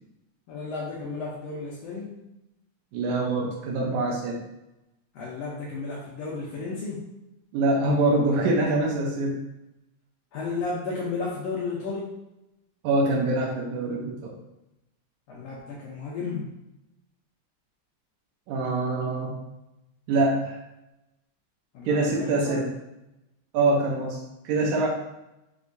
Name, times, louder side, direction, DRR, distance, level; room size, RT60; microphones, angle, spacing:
voice 1, 0.5-2.1 5.1-7.1 10.3-12.1 15.3-16.5 21.7-22.6, left 4 dB, 70° left, -4 dB, 1.6 m, -33 dB
voice 2, 2.9-4.4 7.5-9.4 12.8-14.3 18.5-19.3 20.1-20.6 21.9-22.7 23.5-24.2 24.4-24.9, right 2 dB, 85° right, -2 dB, 2.2 m, -24 dB
6.0 x 2.9 x 2.6 m, 0.92 s
omnidirectional pair, 3.4 m